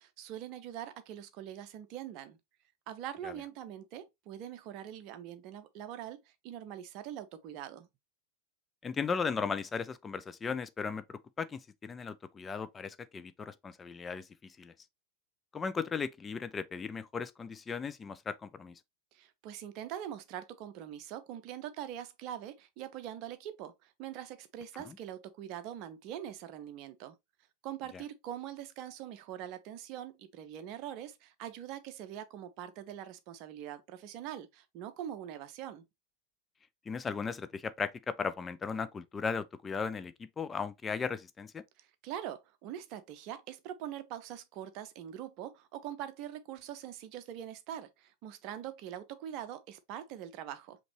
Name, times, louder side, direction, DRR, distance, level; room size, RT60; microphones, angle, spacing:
voice 1, 0.0-2.4 2.9-7.9 19.1-27.2 27.6-35.9 41.8-50.8, right 11 dB, 40° right, 0.7 m, -43 dB
voice 2, 8.8-14.7 15.5-18.7 24.8-25.0 36.9-41.6, left 5 dB, 15° left, 0.4 m, -37 dB
5.2 x 3.0 x 2.8 m
figure-of-eight pair, 90°, 0 cm